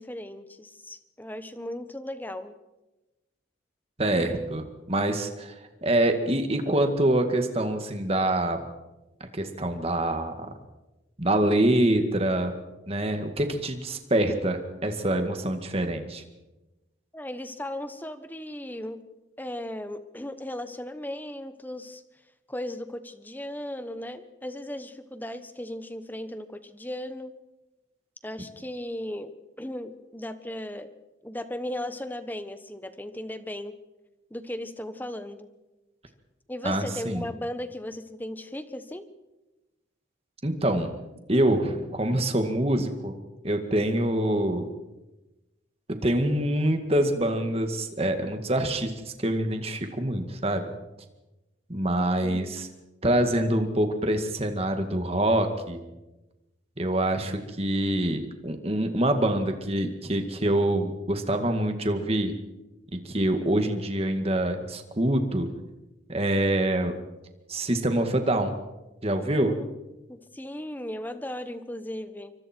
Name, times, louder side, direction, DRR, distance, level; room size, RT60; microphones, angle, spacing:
voice 1, 0.0-2.5 17.1-19.0 19.4-22.0 22.5-27.3 28.2-29.3 29.6-30.9 31.2-33.7 34.3-35.5 36.5-39.0 52.2-52.6 69.4-69.7 70.1-72.3, left 1 dB, 10° left, 10 dB, 1.1 m, -36 dB
voice 2, 4.0-5.5 5.8-8.7 9.3-10.5 11.2-12.5 12.9-16.2 36.6-37.3 40.4-41.0 41.3-44.7 45.9-48.9 49.2-50.7 51.7-52.7 53.0-55.8 56.8-62.4 62.9-65.5 66.1-67.0 67.5-68.5 69.0-69.5, right 1 dB, 30° right, 6 dB, 2.0 m, -25 dB
27.0 x 24.0 x 4.6 m, 1.0 s
head